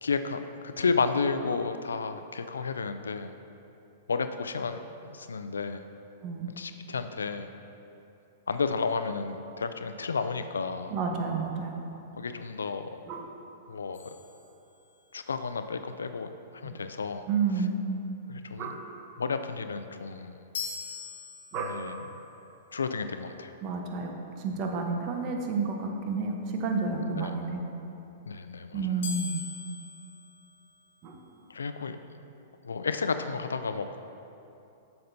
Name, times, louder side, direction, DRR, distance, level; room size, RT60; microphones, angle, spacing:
voice 1, 0.0-3.3 4.1-5.8 6.6-7.5 8.5-10.9 12.2-12.9 13.7-14.1 15.1-16.3 16.5-17.2 17.6-17.7 18.3-18.7 19.2-20.4 21.5-22.0 22.7-23.5 26.8-27.3 28.3-29.0 31.5-32.0 32.6-34.0, left 4 dB, 85° left, 9 dB, 0.3 m, -32 dB
voice 2, 10.9-11.8 13.1-13.3 16.6-16.7 17.3-17.8 18.6-18.8 21.5-21.8 23.6-27.6 28.7-29.4 31.0-31.2, right 4 dB, 40° right, 2 dB, 0.9 m, -30 dB
sound 1, 13.9-15.2 20.5-22.0 29.0-31.2, left 6 dB, 70° left, 1.1 m, -41 dB
8.5 x 6.6 x 2.7 m, 2.8 s
hypercardioid pair, 115°, 0 cm